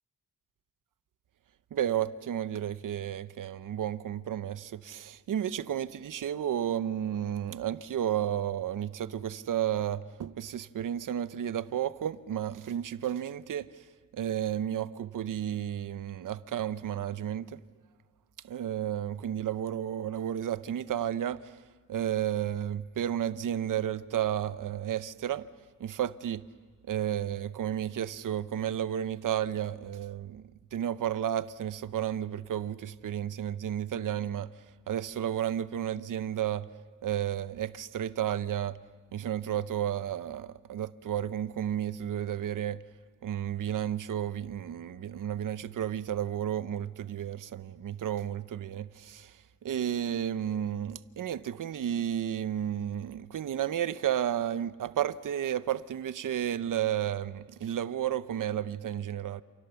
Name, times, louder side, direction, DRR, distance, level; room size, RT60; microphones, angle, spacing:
voice 1, 1.7-13.7 14.1-17.6 18.4-21.5 21.9-25.5 25.8-26.4 26.9-30.4 30.7-34.5 34.9-36.7 37.0-38.8 39.1-42.8 43.2-49.4 49.6-59.4, right 10 dB, 80° right, 0.8 m, -32 dB
28.5 x 28.5 x 7.0 m
wide cardioid pair, 145°, 31 cm